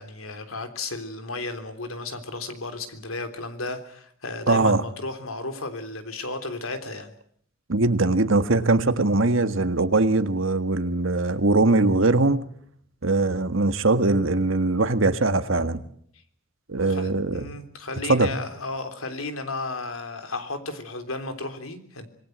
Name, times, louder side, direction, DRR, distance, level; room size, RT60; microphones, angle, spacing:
voice 1, 0.0-7.1 16.8-22.1, left 2 dB, 80° left, 8 dB, 3.5 m, -34 dB
voice 2, 4.5-4.8 7.7-12.4 13.0-15.8 16.7-17.4 18.1-18.3, right 2 dB, 70° right, 10 dB, 1.7 m, -21 dB
26.5 x 19.5 x 8.0 m, 0.66 s
head